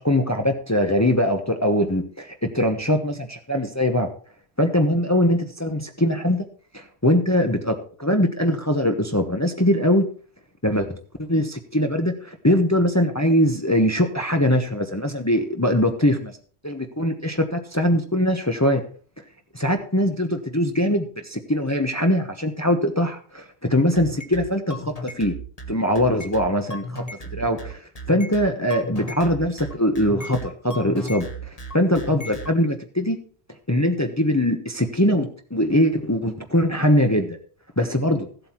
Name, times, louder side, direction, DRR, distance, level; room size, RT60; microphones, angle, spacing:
voice 1, 0.0-4.1 4.6-6.5 6.7-10.1 10.6-16.3 16.6-18.8 19.6-25.3 25.7-27.0 27.3-27.8 28.1-33.2 33.7-37.3 37.8-38.3, equal, 15° left, 5 dB, 1.0 m, -22 dB
sound 1, 24.0-32.5, right 1 dB, 35° left, 1.5 m, -35 dB
15.0 x 8.0 x 4.5 m, 0.43 s
omnidirectional pair, 1.1 m